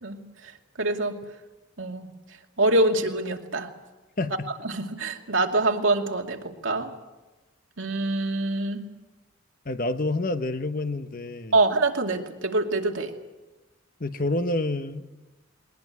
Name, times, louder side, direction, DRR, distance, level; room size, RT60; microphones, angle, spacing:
voice 1, 0.0-0.5 0.8-1.1 1.8-2.1 2.6-3.7 4.6-6.9 7.8-8.8 11.5-13.1, right 2 dB, 75° right, 3 dB, 2.5 m, -25 dB
voice 2, 9.6-11.6 14.0-15.0, left 2 dB, 45° left, 9 dB, 1.1 m, -28 dB
21.5 x 20.5 x 8.5 m, 1.1 s
head